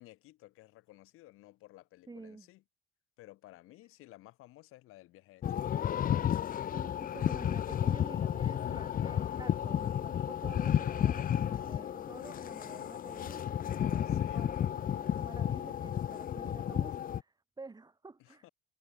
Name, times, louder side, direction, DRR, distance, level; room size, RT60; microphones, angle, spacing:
voice 1, 0.0-2.6 3.2-5.9 11.6-12.1 13.7-14.6 15.3-15.6 18.2-18.5, left 17 dB, 85° left, 6.5 m, -56 dB
voice 2, 2.1-2.5 6.7-18.4, right 3 dB, 20° right, 2.5 m, -50 dB
sound 1, 5.4-17.2, left 10 dB, 40° left, 0.6 m, -32 dB
cardioid pair, 115°, 21 cm